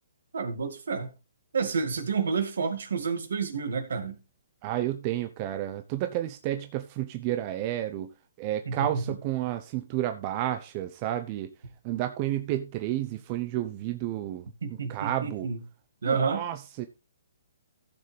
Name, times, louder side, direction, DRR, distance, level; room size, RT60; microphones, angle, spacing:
voice 1, 0.3-1.1 1.5-4.2 8.7-9.0 14.6-15.6 16.0-16.4, right 5 dB, 70° right, 2.1 m, -29 dB
voice 2, 4.6-8.1 8.4-11.5 11.8-15.5 16.0-16.9, right 13 dB, 35° right, 0.8 m, -31 dB
15.0 x 6.5 x 3.4 m
hypercardioid pair, 140°, 0 cm